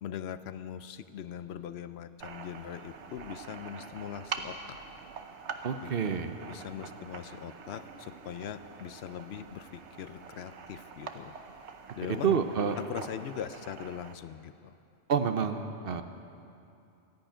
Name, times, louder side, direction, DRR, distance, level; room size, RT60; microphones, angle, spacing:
voice 1, 0.0-4.8 5.8-11.3 12.0-12.4 12.8-14.7, left 9 dB, 70° left, 12 dB, 0.8 m, -41 dB
sound 1, 2.2-14.1, right 5 dB, 85° right, 1.2 m, -45 dB
voice 2, 5.6-6.3 12.1-12.7 15.1-16.0, right 7 dB, 60° right, 8 dB, 0.9 m, -28 dB
13.0 x 10.5 x 9.0 m, 2.6 s
omnidirectional pair, 1.1 m